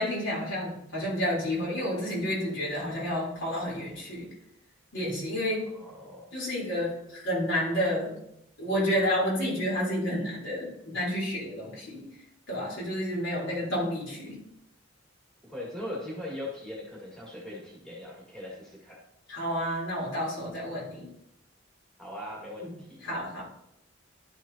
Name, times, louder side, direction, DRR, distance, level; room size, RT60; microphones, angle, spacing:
voice 1, 0.0-4.3 4.9-5.7 6.3-8.2 8.6-12.1 12.5-14.4 19.3-21.1 22.6-22.7 23.0-23.4, equal, 65° left, -5 dB, 3.5 m, -30 dB
voice 2, 5.7-6.3 13.3-13.7 15.4-19.0 22.0-23.1, left 1 dB, 5° left, -5 dB, 1.7 m, -40 dB
11.5 x 6.3 x 2.8 m, 0.81 s
head